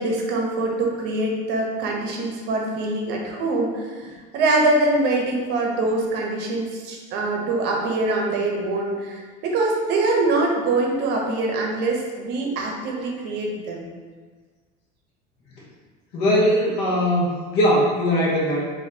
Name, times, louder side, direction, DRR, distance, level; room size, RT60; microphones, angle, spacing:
voice 1, 0.0-13.9, right 2 dB, 55° right, 0 dB, 0.7 m, -24 dB
voice 2, 16.1-17.2 17.5-18.6, equal, 60° left, -3 dB, 1.0 m, -19 dB
4.1 x 2.6 x 2.7 m, 1.5 s
cardioid pair, 140°, 20 cm